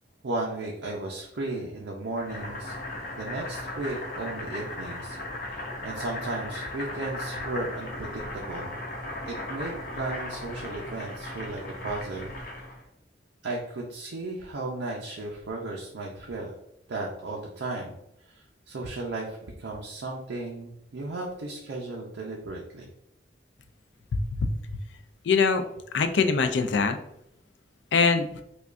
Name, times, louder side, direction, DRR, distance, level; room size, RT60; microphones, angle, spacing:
voice 1, 0.2-2.8 3.0-8.8 9.3-12.3 13.4-16.5 16.9-18.0 18.3-22.9, right 2 dB, 80° right, -1 dB, 0.5 m, -35 dB
Boiling, 2.2-12.8, left 1 dB, 55° left, 0.8 m, -37 dB
voice 2, 24.1-24.6 25.2-25.6 25.9-27.0 27.9-28.4, left 4 dB, 75° left, 7 dB, 0.4 m, -23 dB
4.8 x 2.3 x 2.5 m, 0.78 s
head